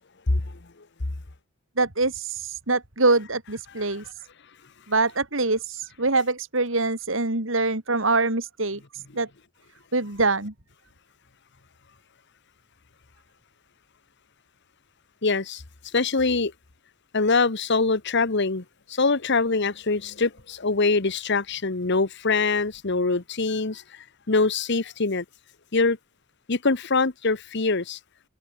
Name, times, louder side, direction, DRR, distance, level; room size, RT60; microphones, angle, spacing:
voice 1, 1.8-4.0 4.9-9.3 9.9-10.5, right 3 dB, 70° right, 3.5 m, -24 dB
voice 2, 15.2-15.6 15.9-16.5 17.1-25.2 25.7-26.0 26.5-28.0, left 3 dB, 60° left, 1.3 m, -24 dB
head